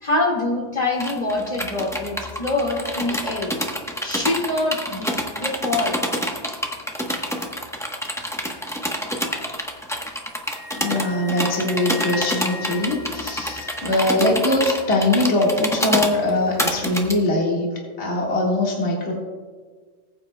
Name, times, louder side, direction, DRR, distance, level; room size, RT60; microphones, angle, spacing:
voice 1, 0.0-3.5 4.0-6.0, left 2 dB, 25° left, -1 dB, 1.9 m, -25 dB
sound 1, 1.0-17.1, equal, 5° left, 0.5 m, -27 dB
Wind instrument woodwind instrument, 10.3-14.1, left 2 dB, 40° right, 1.9 m, -37 dB
voice 2, 10.8-17.7 18.0-19.1, left 2 dB, 40° left, -2 dB, 2.0 m, -22 dB
19.5 x 8.8 x 2.2 m, 1.5 s
omnidirectional pair, 1.8 m